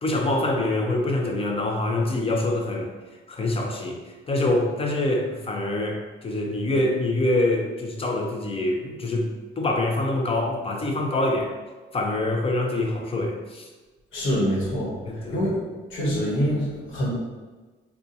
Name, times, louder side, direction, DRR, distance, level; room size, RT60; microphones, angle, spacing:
voice 1, 0.0-2.9 3.3-4.0 4.3-11.5 11.9-13.7 15.1-15.4, left 2 dB, 30° left, 1 dB, 0.6 m, -25 dB
voice 2, 14.1-15.6 15.9-17.1, equal, 80° left, -5 dB, 1.2 m, -25 dB
2.6 x 2.4 x 3.9 m, 1.3 s
cardioid pair, 90°, 20 cm